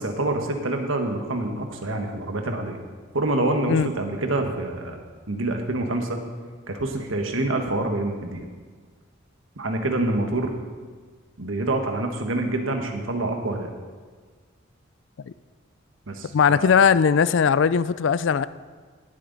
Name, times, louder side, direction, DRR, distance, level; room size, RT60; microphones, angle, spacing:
voice 1, 0.0-2.8 3.1-5.0 5.3-6.2 6.7-8.4 9.6-10.5 11.4-13.7 16.1-16.7, right 2 dB, 80° right, 1.3 m, -26 dB
voice 2, 16.3-18.5, left 6 dB, 65° left, 0.4 m, -19 dB
18.0 x 7.8 x 4.0 m
head